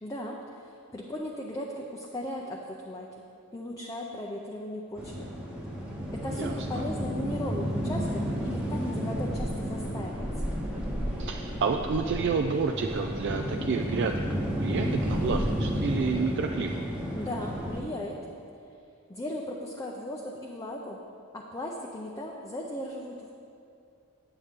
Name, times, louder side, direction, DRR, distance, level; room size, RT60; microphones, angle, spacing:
voice 1, 0.0-3.1 3.5-5.3 6.1-10.3 17.2-18.2 19.1-21.0 21.3-23.3, left 1 dB, 15° left, -2 dB, 0.5 m, -37 dB
sound 1, 5.0-17.8, equal, 5° right, 1.0 m, -32 dB
voice 2, 6.4-6.8 11.2-16.8, right 5 dB, 55° right, 4 dB, 0.3 m, -30 dB
8.8 x 8.1 x 3.6 m, 2.5 s
head